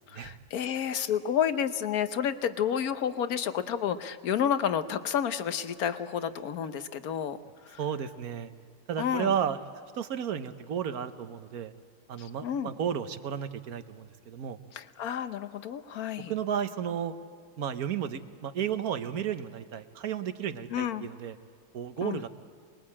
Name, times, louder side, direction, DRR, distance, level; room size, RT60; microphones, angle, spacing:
voice 1, 0.1-7.4 7.6-7.8 9.0-9.3 12.2-12.7 14.7-16.3 20.7-21.1 22.0-22.2, left 8 dB, 60° left, 11 dB, 1.3 m, -30 dB
voice 2, 7.8-8.5 8.9-9.6 9.9-11.7 12.1-14.6 16.3-17.1 17.6-21.3 21.7-22.3, right 8 dB, 60° right, 10 dB, 1.3 m, -33 dB
26.5 x 21.0 x 8.7 m, 2.1 s
omnidirectional pair, 1.9 m